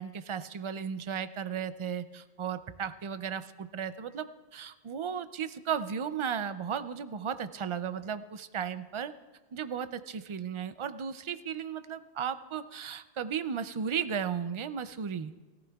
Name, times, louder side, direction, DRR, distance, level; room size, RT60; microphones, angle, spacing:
voice 1, 0.0-9.1 9.5-15.3, right 7 dB, 55° right, 12 dB, 0.3 m, -35 dB
21.0 x 14.0 x 2.3 m, 1.2 s
omnidirectional pair, 1.1 m